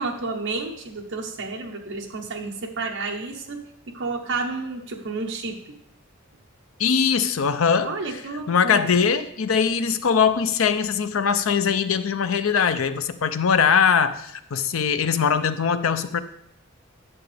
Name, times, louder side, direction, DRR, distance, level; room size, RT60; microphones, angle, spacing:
voice 1, 0.0-5.6 7.8-9.0, right 3 dB, 65° right, 2 dB, 0.9 m, -31 dB
voice 2, 6.8-7.9 8.5-16.2, left 6 dB, 70° left, 11 dB, 0.6 m, -21 dB
10.5 x 6.9 x 3.4 m, 0.75 s
head